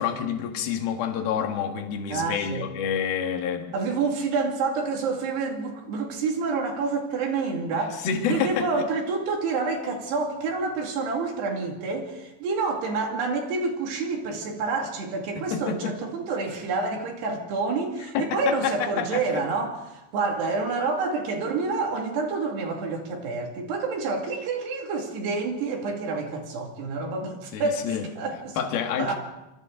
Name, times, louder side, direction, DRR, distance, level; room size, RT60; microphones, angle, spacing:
voice 1, 0.0-3.7 8.0-8.7 15.5-15.9 18.3-19.2 27.5-28.0 28.6-29.2, left 7 dB, 60° left, 3 dB, 3.3 m, -28 dB
voice 2, 2.1-2.7 3.7-27.9 28.2-29.2, right 4 dB, 60° right, 2 dB, 4.2 m, -28 dB
26.0 x 26.0 x 3.9 m, 0.98 s
omnidirectional pair, 5.7 m